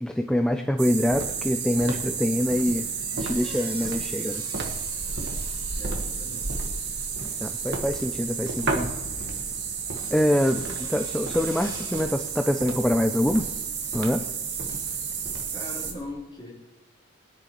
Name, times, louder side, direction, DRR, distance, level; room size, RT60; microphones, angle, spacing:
voice 1, 0.0-2.9 3.1-4.4 7.4-8.9 10.1-13.4 13.9-14.2, equal, 5° left, 5 dB, 0.4 m, -25 dB
sound 1, 0.8-15.9, right 5 dB, 50° right, 1.4 m, -31 dB
sound 2, 3.0-7.8 9.8-12.0, right 1 dB, 20° right, 2.4 m, -47 dB
voice 2, 5.8-6.6 15.5-16.5, left 1 dB, 20° left, -5 dB, 3.6 m, -39 dB
21.0 x 10.0 x 3.1 m, 0.97 s
head